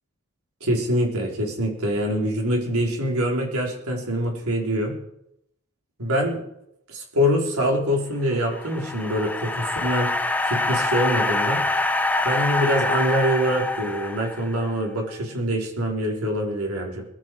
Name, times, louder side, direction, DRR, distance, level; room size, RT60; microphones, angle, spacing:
voice 1, 0.6-5.0 6.0-6.4 6.9-10.1 10.4-11.6 12.2-17.0, equal, 90° right, 0 dB, 4.0 m, -24 dB
sound 1, 8.3-14.7, left 2 dB, 5° left, 0.6 m, -25 dB
21.5 x 11.5 x 4.7 m, 0.79 s
head